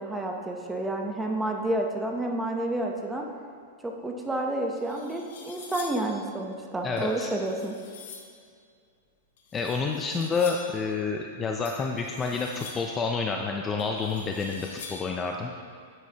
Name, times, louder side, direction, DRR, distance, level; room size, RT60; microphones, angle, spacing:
voice 1, 0.0-3.3 3.8-7.8, right 1 dB, 10° right, 1 dB, 0.8 m, -30 dB
sound 1, 4.2-4.3 4.8-6.1 7.0-8.4 9.4-10.8 11.6-13.0 13.8-15.2, left 5 dB, 70° left, 1.3 m, -45 dB
voice 2, 6.8-7.3 9.5-15.5, left 4 dB, 15° left, 2 dB, 0.4 m, -29 dB
9.6 x 7.5 x 2.9 m, 2.2 s
supercardioid pair, 150°, 0 cm